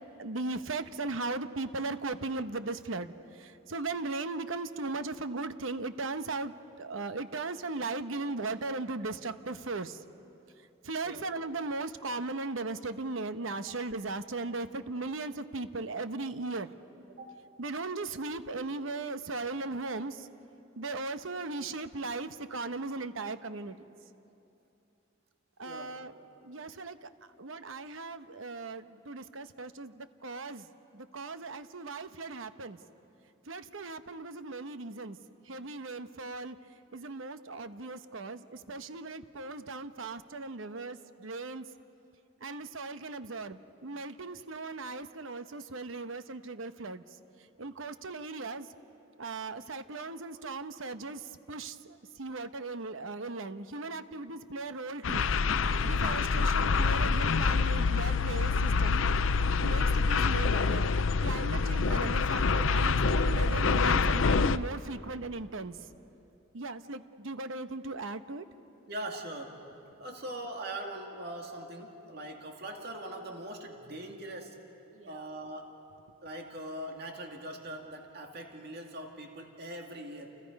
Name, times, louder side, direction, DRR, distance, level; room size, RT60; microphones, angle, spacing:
voice 1, 0.2-6.5 6.8-10.0 10.8-16.7 17.6-20.3 20.8-23.9 25.6-26.1 26.4-27.1 27.4-30.7 30.9-32.8 33.5-35.2 35.5-36.6 36.9-41.6 42.4-47.0 47.6-48.7 49.2-55.3 55.8-59.0 59.6-65.8 66.5-68.4 74.9-75.2, right 3 dB, 75° right, 10 dB, 1.0 m, -38 dB
voice 2, 25.6-26.2 29.2-29.3 68.9-69.6 70.0-74.6 75.1-75.8 76.2-80.4, right 1 dB, 55° right, 2 dB, 2.3 m, -42 dB
sound 1, 55.0-64.6, left 4 dB, 75° left, 0.6 m, -26 dB
29.5 x 29.0 x 5.3 m, 2.8 s
head